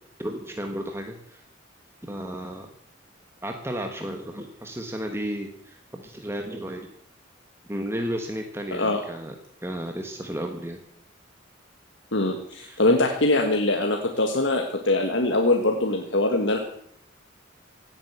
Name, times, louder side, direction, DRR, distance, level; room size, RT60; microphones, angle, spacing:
voice 1, 0.2-1.4 2.0-2.7 3.4-6.9 7.7-9.3 9.6-10.8 12.5-12.8, equal, 10° right, 4 dB, 1.4 m, -33 dB
voice 2, 12.1-16.6, left 2 dB, 70° left, 3 dB, 1.7 m, -23 dB
17.0 x 9.1 x 8.0 m, 0.67 s
head